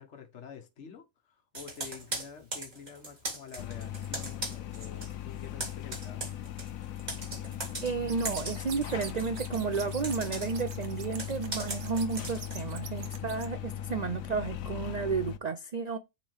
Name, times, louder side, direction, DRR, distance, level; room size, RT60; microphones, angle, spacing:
voice 1, 0.0-6.2, left 7 dB, 55° left, 1.5 m, -48 dB
Computer keyboard, 1.5-5.1 5.4-12.7, right 2 dB, 30° right, 2.2 m, -40 dB
sound 1, 3.6-15.4, left 10 dB, 80° left, 1.1 m, -39 dB
voice 2, 7.8-16.0, right 5 dB, 75° right, 0.3 m, -32 dB
sound 2, 8.1-13.5, right 6 dB, 60° right, 1.1 m, -45 dB
7.4 x 3.7 x 3.4 m
omnidirectional pair, 1.4 m